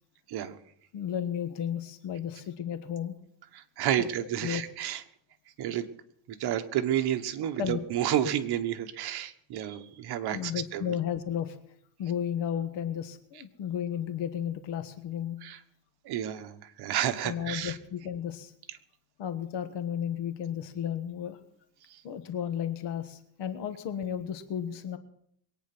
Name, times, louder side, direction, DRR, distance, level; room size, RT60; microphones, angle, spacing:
voice 1, 0.9-3.2 4.0-4.6 7.6-7.8 8.2-8.3 10.3-11.6 12.0-15.4 17.2-18.5 19.2-21.4 22.0-25.0, left 9 dB, 70° left, 10 dB, 1.4 m, -33 dB
voice 2, 3.5-5.0 5.6-5.9 6.4-10.9 15.4-15.6 16.0-17.8 21.9-22.0, right 11 dB, 60° right, 8 dB, 1.4 m, -31 dB
22.0 x 9.4 x 6.1 m, 0.68 s
cardioid pair, 155°, 44 cm